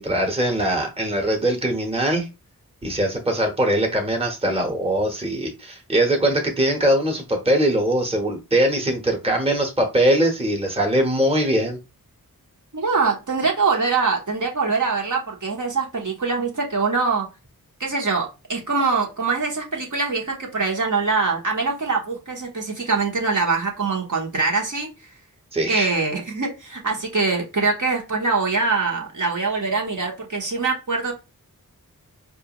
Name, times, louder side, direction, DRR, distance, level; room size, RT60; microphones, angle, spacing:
voice 1, 0.0-2.3 2.8-11.8 25.5-25.9, right 1 dB, 15° right, 1.1 m, -21 dB
voice 2, 12.7-17.3 17.8-24.9 25.7-31.1, right 4 dB, 55° right, 1.1 m, -23 dB
4.5 x 2.5 x 3.0 m
wide cardioid pair, 55°, 37 cm